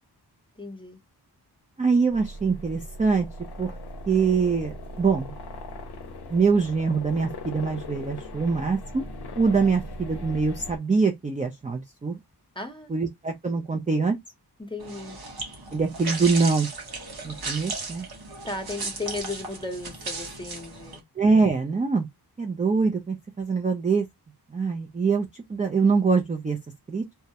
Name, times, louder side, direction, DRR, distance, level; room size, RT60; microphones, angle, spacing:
voice 1, 0.6-1.0 12.6-12.9 14.6-15.2 18.4-21.0, left 2 dB, 10° left, 0.7 m, -35 dB
voice 2, 1.8-3.3 3.6-3.7 4.1-5.3 6.3-9.0 9.4-12.2 12.9-14.2 15.7-16.7 17.2-18.1 21.2-22.1 22.4-24.1 24.5-26.6 26.9-27.0, right 4 dB, 20° right, 0.3 m, -24 dB
sound 1, 2.1-10.8, left 1 dB, 70° left, 0.6 m, -39 dB
sound 2, 14.8-21.0, right 3 dB, 65° right, 0.9 m, -36 dB
2.3 x 2.0 x 2.7 m
wide cardioid pair, 80°, 41 cm